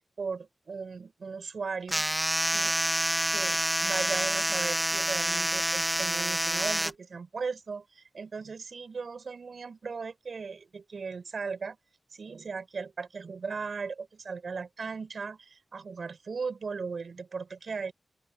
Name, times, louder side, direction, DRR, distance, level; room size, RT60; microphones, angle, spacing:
voice 1, 0.0-2.1 2.4-2.9 3.3-11.8 12.1-17.9, right 5 dB, 70° right, 5.6 m, -37 dB
sound 1, 1.9-6.9, equal, 5° right, 0.5 m, -28 dB
open air
cardioid pair, 65°, 0 cm